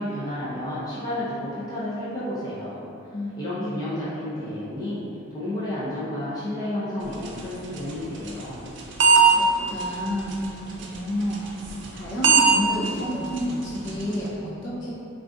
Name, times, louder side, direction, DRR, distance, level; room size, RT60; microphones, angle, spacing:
voice 1, 0.0-2.8 3.4-5.0 5.3-8.6, left 1 dB, 20° left, -11 dB, 0.4 m, -31 dB
voice 2, 3.6-3.9 9.3-10.3 10.8-11.5 11.9-14.9, equal, 60° left, -7 dB, 0.7 m, -30 dB
sound 1, 7.0-14.3, right 4 dB, 55° right, 0.4 m, -24 dB
3.6 x 2.4 x 2.4 m, 2.8 s
head